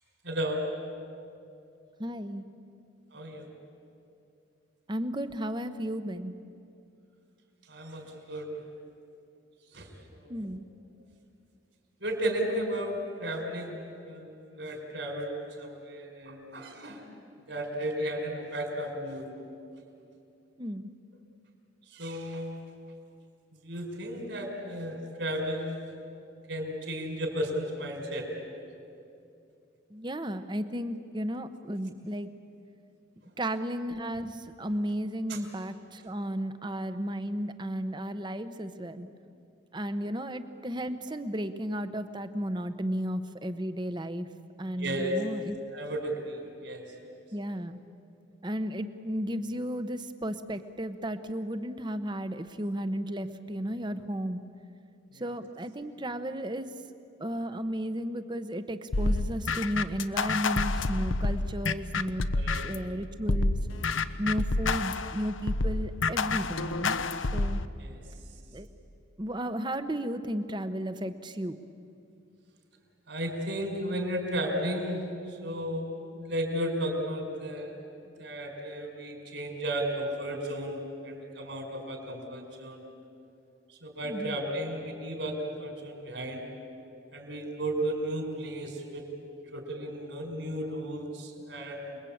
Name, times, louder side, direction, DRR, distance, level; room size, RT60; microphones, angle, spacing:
voice 1, 0.2-0.6 3.1-3.5 7.7-8.5 9.7-10.4 12.0-17.0 17.5-19.3 21.9-22.6 23.6-25.9 26.5-28.3 35.3-35.4 44.7-45.1 45.7-47.2 55.1-55.3 62.3-62.7 67.8-68.0 73.1-75.0 75.3-77.7 78.2-82.9 83.7-86.4 87.1-89.1 89.5-92.0, right 1 dB, 65° right, 2 dB, 5.3 m, -34 dB
voice 2, 2.0-2.5 4.9-6.3 10.3-10.6 20.6-20.9 29.9-32.3 33.4-39.1 39.7-44.3 44.6-45.6 47.3-47.8 48.4-54.4 55.1-56.7 57.2-62.3 62.6-63.6 64.2-67.0 67.3-67.6 68.5-68.7 69.2-71.6 84.0-84.4, equal, 25° right, 10 dB, 1.0 m, -34 dB
sound 1, 58.9-62.9 63.3-67.7, left 3 dB, 80° left, 0.9 m, -28 dB
28.5 x 21.5 x 8.7 m, 2.6 s
head